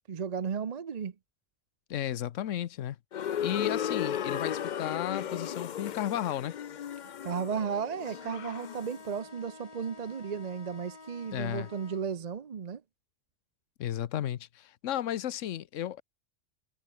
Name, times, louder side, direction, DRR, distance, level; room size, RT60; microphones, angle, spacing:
voice 1, 0.1-1.1 7.0-12.8, right 6 dB, 40° right, 0.7 m, -34 dB
voice 2, 1.9-3.0 3.4-6.6 11.3-11.7 13.8-16.0, left 11 dB, 85° left, 1.1 m, -33 dB
sound 1, 3.1-9.0, left 9 dB, 55° left, 0.6 m, -35 dB
sound 2, 7.9-12.0, left 3 dB, 30° left, 1.6 m, -50 dB
omnidirectional pair, 1.3 m